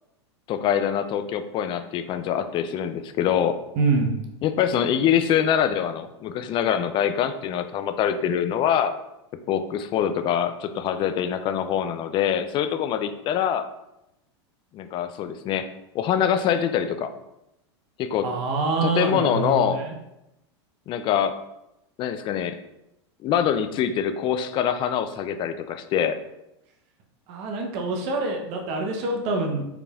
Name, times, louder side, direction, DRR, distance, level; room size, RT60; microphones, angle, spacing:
voice 1, 0.5-3.6 4.4-8.9 9.5-13.7 14.7-15.7 15.9-17.1 18.0-18.3 18.8-19.8 20.9-21.4 22.0-22.6 23.2-26.2, left 9 dB, 35° left, 9 dB, 0.4 m, -24 dB
voice 2, 3.8-4.1 18.2-19.9 27.3-29.7, right 3 dB, 50° right, 1 dB, 0.8 m, -25 dB
4.9 x 3.2 x 2.4 m, 0.88 s
hypercardioid pair, 115°, 15 cm